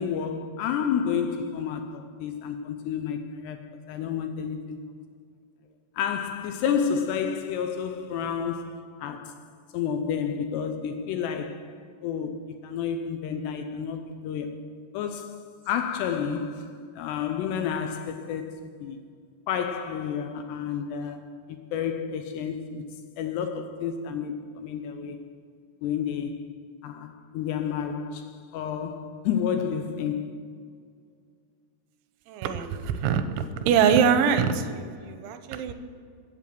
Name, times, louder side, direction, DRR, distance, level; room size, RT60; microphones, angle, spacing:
voice 1, 0.0-4.8 6.0-9.5 9.7-14.6 14.9-19.0 19.5-22.9 23.2-25.2 25.8-26.5 26.8-30.4, left 7 dB, 80° left, 2.6 m, -30 dB
voice 2, 32.3-35.7, right 7 dB, 85° right, 3.2 m, -24 dB
15.0 x 8.3 x 7.6 m
omnidirectional pair, 5.3 m